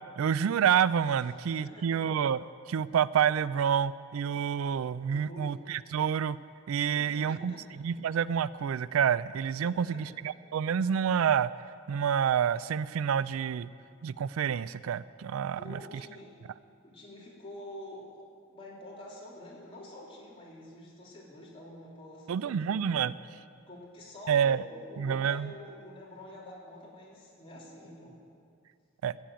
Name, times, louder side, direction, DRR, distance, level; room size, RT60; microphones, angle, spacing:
voice 1, 0.2-2.4 2.7-6.4 6.7-7.5 7.8-11.5 11.9-13.7 14.0-15.8 22.3-23.2 24.3-24.6 25.0-25.5 29.0-29.1, right 8 dB, 90° right, 18 dB, 0.3 m, -28 dB
voice 2, 1.6-2.0 5.1-5.6 6.8-7.6 9.6-10.0 15.5-16.4 16.8-18.2 18.5-23.1 23.7-28.1, left 1 dB, 25° left, -5 dB, 3.3 m, -47 dB
15.5 x 7.1 x 9.0 m, 2.3 s
head